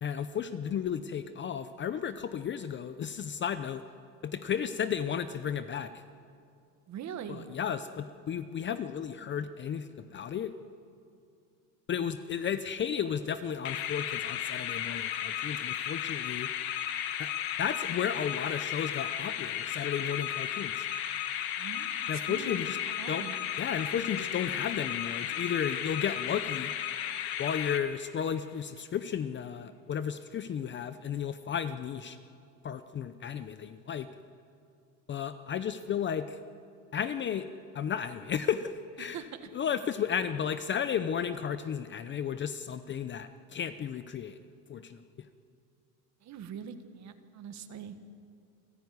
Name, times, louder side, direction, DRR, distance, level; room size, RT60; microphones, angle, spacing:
voice 1, 0.0-3.8 4.2-5.9 7.3-10.5 11.9-16.5 17.2-17.3 17.6-20.9 22.1-22.8 23.1-23.2 23.6-26.7 27.4-32.2 32.6-34.1 35.1-36.4 36.9-37.5 37.7-39.2 39.5-44.4 44.7-45.0, left 8 dB, 25° left, 11 dB, 0.7 m, -33 dB
voice 2, 6.9-7.5 21.6-23.4 39.0-39.5 46.2-48.1, right 8 dB, 40° right, 9 dB, 1.8 m, -43 dB
sound 1, 13.6-28.3, left 10 dB, 55° left, 1.9 m, -34 dB
28.0 x 15.5 x 9.6 m, 2.4 s
cardioid pair, 145°, 44 cm